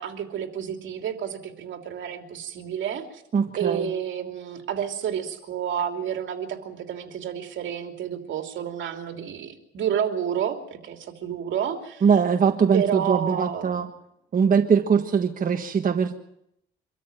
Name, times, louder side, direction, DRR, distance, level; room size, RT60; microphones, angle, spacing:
voice 1, 0.0-3.2 3.6-12.0 12.7-13.9, right 8 dB, 70° right, 6 dB, 3.0 m, -30 dB
voice 2, 3.3-3.9 12.0-13.9 14.3-16.2, right 6 dB, 45° right, 5 dB, 1.4 m, -21 dB
25.0 x 13.5 x 9.2 m, 0.77 s
cardioid pair, 90°, 20 cm